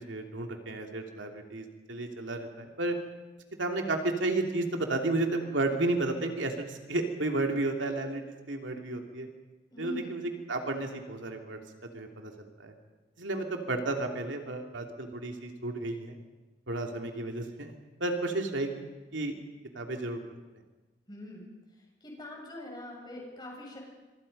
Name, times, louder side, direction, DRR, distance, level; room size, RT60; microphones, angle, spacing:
voice 1, 0.0-3.0 3.6-9.3 9.8-11.6 11.9-12.7 13.2-16.2 16.7-18.8 19.1-19.4 19.7-20.2, right 2 dB, 85° right, 3 dB, 2.9 m, -32 dB
voice 2, 9.7-10.1 21.1-21.5 22.0-23.8, left 1 dB, 25° left, -1 dB, 7.0 m, -42 dB
26.5 x 24.5 x 5.5 m, 1.2 s
head